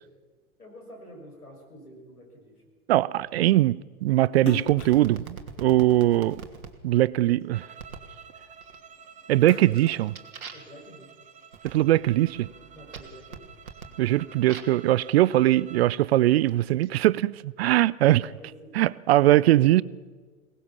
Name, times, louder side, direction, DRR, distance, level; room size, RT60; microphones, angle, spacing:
voice 1, 0.6-2.6 10.5-11.2 12.7-13.5 18.0-18.8, equal, 85° left, 5.9 m, -48 dB
voice 2, 2.9-6.4 6.8-7.6 9.3-10.2 11.6-12.5 14.0-18.2 18.7-19.8, right 15 dB, 45° right, 0.5 m, -21 dB
Splash splatter, 4.4-6.9 7.4-8.8 9.2-10.9, left 13 dB, 30° left, 1.1 m, -42 dB
sound 1, 4.7-6.7 7.8-8.1 8.6-9.1 9.5-14.9 15.6-16.9, right 5 dB, 75° right, 2.5 m, -44 dB
sound 2, 7.5-15.9, right 7 dB, 15° right, 1.3 m, -50 dB
22.5 x 19.0 x 7.2 m
figure-of-eight pair, 95°, 43 cm